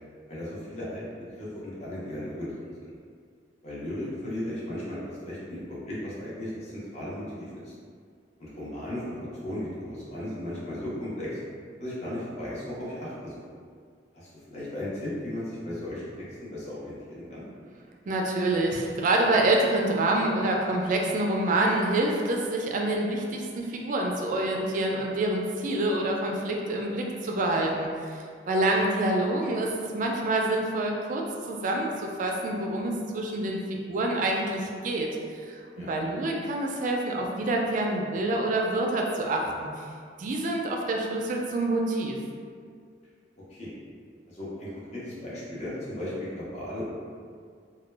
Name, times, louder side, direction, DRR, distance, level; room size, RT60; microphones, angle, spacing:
voice 1, 0.3-1.0 1.4-2.9 3.6-7.7 8.4-11.4 11.8-13.5 14.1-16.2 16.5-17.4 35.7-35.9 43.5-43.7 44.3-46.8, left 1 dB, 40° left, -8 dB, 0.6 m, -36 dB
voice 2, 18.1-35.1 35.3-39.7 40.2-42.2, right 2 dB, 45° right, 0 dB, 0.3 m, -27 dB
2.1 x 2.0 x 3.2 m, 2.1 s
head